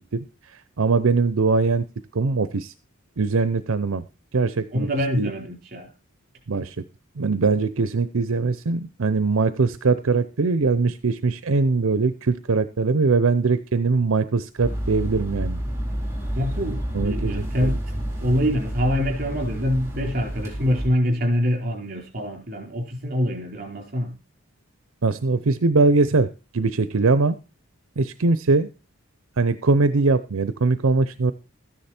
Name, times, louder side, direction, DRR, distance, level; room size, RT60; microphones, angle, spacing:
voice 1, 0.1-1.8 2.1-2.7 3.2-4.0 4.3-4.9 5.2-5.3 6.5-6.8 7.2-15.6 16.9-17.8 25.0-26.3 26.5-27.4 28.0-28.7 29.4-31.3, right 4 dB, 80° right, 13 dB, 0.6 m, -21 dB
voice 2, 4.7-5.9 16.3-17.8 18.2-24.1, equal, 45° right, 3 dB, 4.2 m, -25 dB
sound 1, 14.6-20.9, equal, 10° right, 3.8 m, -29 dB
13.5 x 10.0 x 4.3 m, 0.32 s
head